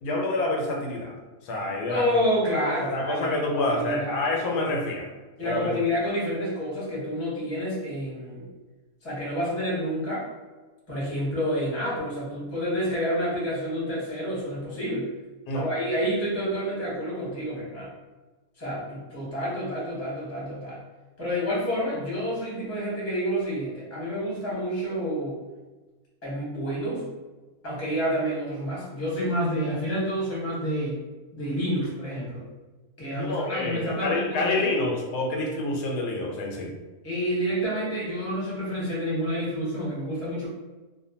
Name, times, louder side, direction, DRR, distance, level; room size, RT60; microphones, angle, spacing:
voice 1, 0.0-1.1 1.4-2.0 2.9-5.1 5.4-5.7 15.5-15.7 33.1-36.7, left 2 dB, 90° left, -1 dB, 1.2 m, -27 dB
voice 2, 1.9-4.2 5.4-8.5 9.0-10.3 10.9-15.1 15.5-17.9 18.6-20.8 21.2-25.4 26.2-27.0 27.6-31.0 31.3-32.4 33.0-34.7 37.0-40.5, equal, 15° left, -6 dB, 0.6 m, -29 dB
2.8 x 2.2 x 2.7 m, 1.2 s
omnidirectional pair, 1.7 m